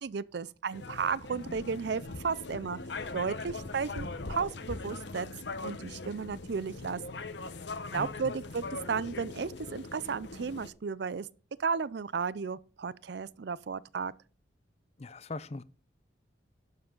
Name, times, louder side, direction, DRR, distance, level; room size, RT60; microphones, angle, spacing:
voice 1, 0.0-2.8 3.1-5.3 5.5-7.3 7.9-11.3 11.6-14.1, right 5 dB, 65° right, 0.5 m, -34 dB
sound 1, 0.7-10.7, left 3 dB, 70° left, 1.0 m, -41 dB
voice 2, 15.0-15.6, left 2 dB, 35° left, 0.5 m, -39 dB
11.0 x 7.2 x 3.8 m
head